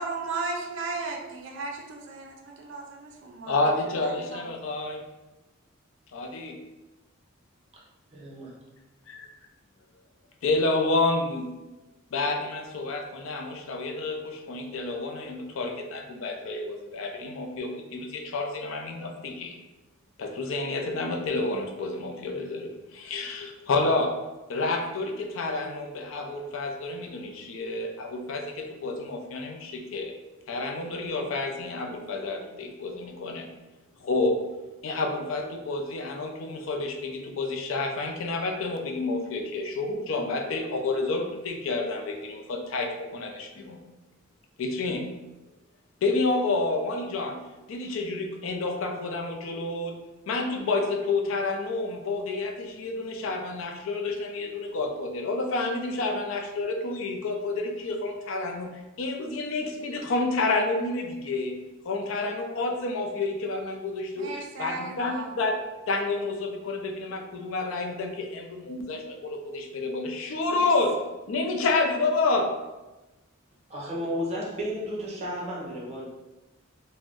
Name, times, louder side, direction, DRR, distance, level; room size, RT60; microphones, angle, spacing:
voice 1, 0.0-3.6 4.0-4.5 64.2-65.3 70.4-70.7, right 3 dB, 65° right, 1 dB, 0.4 m, -35 dB
voice 2, 3.5-5.0 6.1-6.6 9.1-9.3 10.4-11.6 12.1-19.6 20.2-24.1 24.5-30.1 30.5-33.5 34.0-34.4 34.8-43.8 44.6-45.0 46.0-47.4 47.7-49.9 50.3-61.6 61.8-65.6 65.9-71.0 71.3-72.5, left 3 dB, 70° left, 3 dB, 0.4 m, -29 dB
voice 3, 8.1-8.6 73.7-76.0, equal, 30° right, -4 dB, 0.7 m, -33 dB
2.5 x 2.1 x 3.4 m, 1.1 s
head